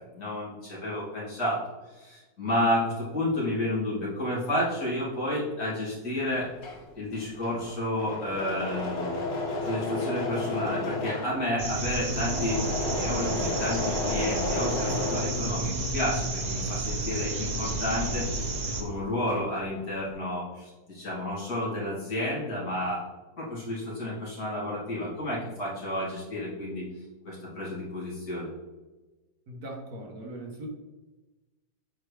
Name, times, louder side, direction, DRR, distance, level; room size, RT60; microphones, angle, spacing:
voice 1, 0.1-1.6 1.9-6.5 6.9-9.2 9.6-12.6 12.9-18.5 18.7-23.0 23.4-26.9 27.2-28.5, left 1 dB, 55° left, -7 dB, 3.0 m, -31 dB
Engine / Mechanisms, 6.4-16.0 16.3-18.7 18.9-19.6, left 2 dB, 90° left, 1.8 m, -33 dB
sound 1, 11.6-18.8, right 2 dB, 45° right, 0.5 m, -31 dB
voice 2, 29.5-30.7, right 1 dB, 60° right, 1 dB, 1.5 m, -40 dB
7.9 x 4.7 x 3.3 m, 1.2 s
omnidirectional pair, 1.9 m